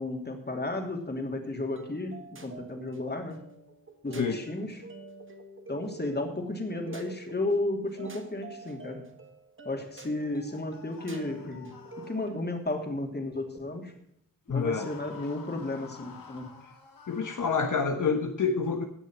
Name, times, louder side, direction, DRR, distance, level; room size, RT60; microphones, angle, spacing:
voice 1, 0.0-3.4 4.0-4.8 5.7-9.0 9.6-11.7 12.1-13.9 14.5-16.5, left 2 dB, 30° left, 3 dB, 3.0 m, -33 dB
sound 1, 1.8-13.9, right 3 dB, 35° right, 1.8 m, -48 dB
sound 2, 10.2-12.6 14.5-17.7, left 5 dB, 85° left, 2.3 m, -50 dB
voice 2, 14.5-14.9 17.1-18.9, left 5 dB, 65° left, 4 dB, 1.3 m, -27 dB
17.5 x 6.5 x 6.1 m, 0.73 s
cardioid pair, 70°, 33 cm